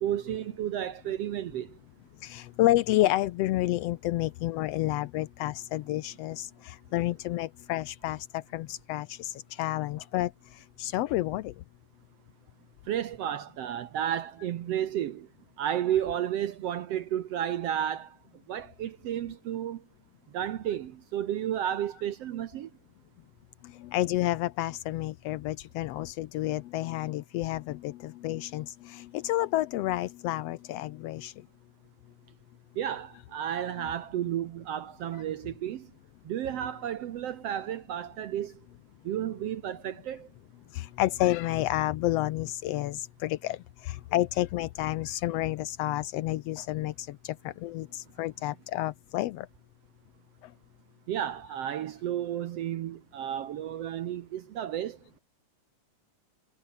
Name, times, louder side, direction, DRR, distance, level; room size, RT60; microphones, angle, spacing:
voice 1, 0.0-1.7 12.9-15.3 15.6-18.2 18.5-19.8 20.3-22.7 32.8-35.9 36.3-38.5 39.1-40.3 51.1-55.2, right 10 dB, 70° right, 1.6 m, -32 dB
voice 2, 2.2-10.3 10.8-11.5 23.7-31.3 40.7-49.5, left 15 dB, 85° left, 1.4 m, -30 dB
omnidirectional pair, 3.6 m